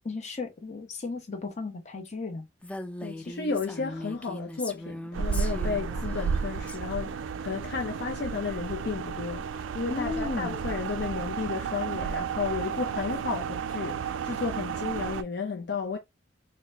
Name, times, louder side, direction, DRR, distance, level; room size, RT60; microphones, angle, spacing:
voice 1, 0.0-2.5 9.9-10.5, left 3 dB, 40° left, 0.8 m, -34 dB
Female speech woman speaking, 2.6-6.8, left 1 dB, 5° left, 0.3 m, -39 dB
voice 2, 3.0-16.0, left 5 dB, 60° left, 0.5 m, -33 dB
sound 1, 5.1-15.2, right 6 dB, 85° right, 0.3 m, -32 dB
3.9 x 2.1 x 3.2 m
head